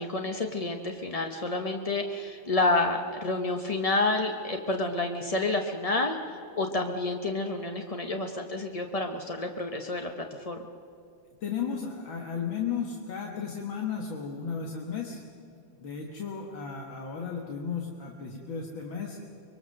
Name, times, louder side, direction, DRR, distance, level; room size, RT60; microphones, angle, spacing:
voice 1, 0.0-10.1 10.5-10.7, left 2 dB, 40° left, 4 dB, 0.5 m, -29 dB
voice 2, 11.4-15.2 15.8-19.2, left 6 dB, 75° left, 1 dB, 2.3 m, -34 dB
24.0 x 22.0 x 6.6 m, 2.5 s
omnidirectional pair, 2.2 m